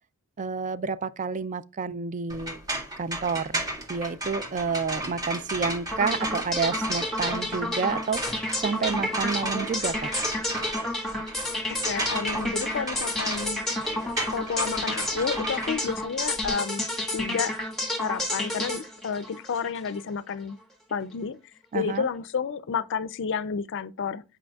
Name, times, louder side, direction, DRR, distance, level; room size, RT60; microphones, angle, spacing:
voice 1, 0.4-2.6 3.0-3.6 3.9-8.2 8.6-10.1 21.7-22.1, right 5 dB, 35° right, 0.4 m, -29 dB
sound 1, 2.3-16.5, right 1 dB, 15° right, 1.5 m, -34 dB
sound 2, 5.9-20.0, left 1 dB, ahead, 1.5 m, -30 dB
voice 2, 11.8-13.6 14.3-17.5 18.0-20.6 20.9-21.4 21.7-24.2, left 6 dB, 55° left, 0.4 m, -30 dB
8.7 x 5.0 x 2.3 m
head